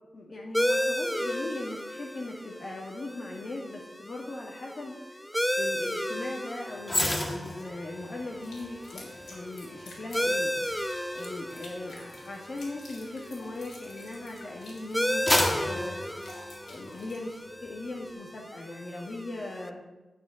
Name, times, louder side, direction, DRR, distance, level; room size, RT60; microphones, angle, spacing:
voice 1, 0.1-5.2 5.6-10.5 11.1-16.0 16.7-19.8, left 2 dB, 45° left, -1 dB, 1.9 m, -39 dB
sound 1, 0.5-19.7, equal, 5° left, 0.6 m, -34 dB
sound 2, 6.8-14.3 14.7-17.1 17.5-17.7, left 1 dB, 20° left, 1.7 m, -33 dB
sound 3, 8.4-17.3, left 2 dB, 85° left, 4.0 m, -51 dB
9.8 x 9.0 x 7.7 m, 1.1 s
wide cardioid pair, 135°, 0 cm